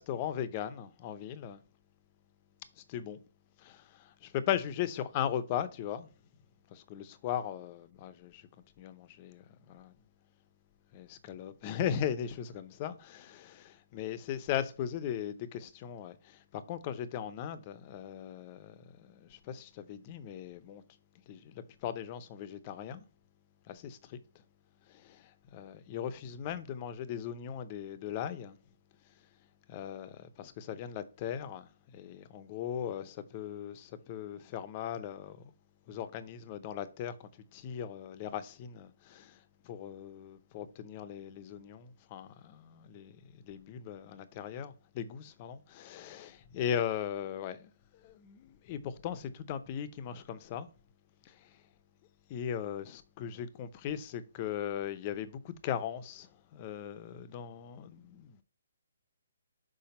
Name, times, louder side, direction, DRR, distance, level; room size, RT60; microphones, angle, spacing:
voice 1, 0.0-1.6 2.8-3.2 3.6-6.1 6.7-8.5 8.8-9.9 10.9-20.8 21.3-23.1 23.7-24.4 24.9-28.6 29.7-35.4 35.9-50.7 51.2-51.6 52.3-58.4, left 9 dB, 30° left, 0.6 m, -38 dB
5.9 x 4.9 x 4.3 m
hypercardioid pair, 155°, 0 cm